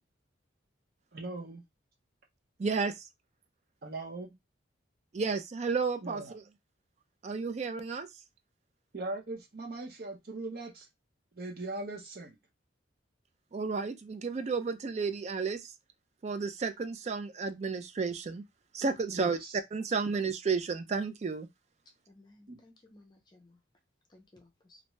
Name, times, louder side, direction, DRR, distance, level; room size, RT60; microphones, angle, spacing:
voice 1, 1.1-1.6 3.8-4.3 6.0-6.3 8.9-10.9 11.3-12.4 19.1-19.6 22.5-22.6, right 2 dB, 50° right, 0.7 m, -40 dB
voice 2, 2.6-3.1 5.1-6.2 7.2-8.1 13.5-15.7 16.2-18.4 18.7-19.4 19.7-21.5, right 4 dB, 35° right, 0.3 m, -32 dB
voice 3, 22.1-23.6 24.1-24.8, left 2 dB, 25° left, 0.5 m, -59 dB
2.5 x 2.2 x 3.0 m
head